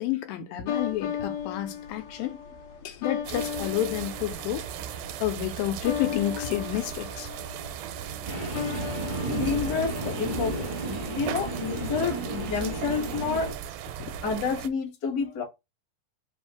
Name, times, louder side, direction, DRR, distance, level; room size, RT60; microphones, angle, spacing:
voice 1, 0.0-2.4 2.8-4.7 5.2-7.3 14.0-14.1, left 12 dB, 85° left, 2.4 m, -30 dB
sound 1, 0.7-11.6, left 8 dB, 65° left, 1.8 m, -37 dB
sound 2, 3.3-14.7, right 10 dB, 85° right, 2.3 m, -37 dB
Train, 8.2-13.5, right 2 dB, 35° right, 0.7 m, -33 dB
voice 2, 9.3-13.5 14.2-15.4, left 5 dB, 45° left, 1.1 m, -29 dB
5.3 x 2.6 x 3.6 m
omnidirectional pair, 4.1 m